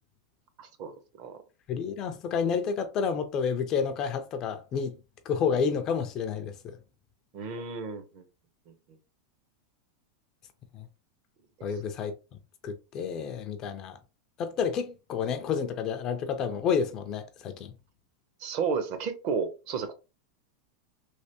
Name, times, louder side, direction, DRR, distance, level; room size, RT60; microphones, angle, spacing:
voice 1, 0.6-1.4 7.3-8.2 18.4-19.9, right 5 dB, 35° right, 0.5 m, -32 dB
voice 2, 1.7-4.9 5.3-6.8 10.7-10.9 11.6-12.1 12.6-14.0 14.4-17.7, left 6 dB, 25° left, 0.3 m, -30 dB
3.2 x 2.8 x 2.8 m
supercardioid pair, 175°, 2 cm